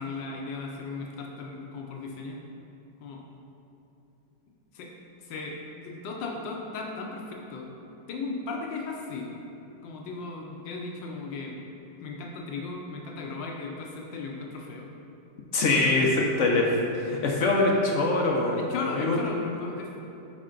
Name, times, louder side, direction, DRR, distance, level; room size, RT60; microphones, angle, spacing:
voice 1, 0.0-2.4 3.0-3.2 4.7-4.9 5.2-7.7 8.1-9.3 9.8-11.7 12.0-14.9 18.6-20.0, left 3 dB, 80° left, 0 dB, 1.4 m, -36 dB
voice 2, 15.5-18.6 18.9-19.2, left 2 dB, 60° left, -1 dB, 0.8 m, -23 dB
10.5 x 4.3 x 3.8 m, 2.9 s
omnidirectional pair, 2.0 m